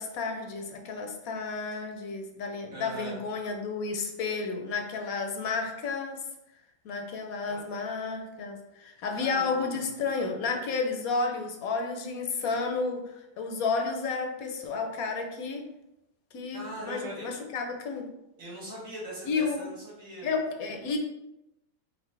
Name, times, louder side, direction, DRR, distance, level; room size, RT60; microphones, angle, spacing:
voice 1, 0.0-6.3 6.8-15.7 16.3-18.1 19.2-19.7 20.2-21.0, left 4 dB, 80° left, 3 dB, 1.2 m, -32 dB
voice 2, 2.7-3.2 7.4-7.6 9.1-9.9 16.5-17.3 18.4-20.3, right 1 dB, 70° right, -7 dB, 2.3 m, -40 dB
5.2 x 2.8 x 3.2 m, 0.87 s
omnidirectional pair, 1.5 m